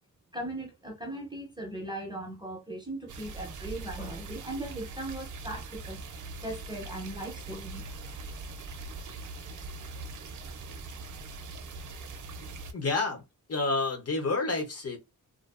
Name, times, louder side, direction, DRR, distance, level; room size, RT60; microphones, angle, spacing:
voice 1, 0.3-6.0 6.4-7.8, right 1 dB, 15° right, 0.5 m, -38 dB
sound 1, 3.1-12.7, right 3 dB, 65° right, 0.5 m, -41 dB
voice 2, 12.7-13.2 13.5-15.0, left 3 dB, 45° left, 0.7 m, -29 dB
2.5 x 2.2 x 2.3 m
wide cardioid pair, 180°, 33 cm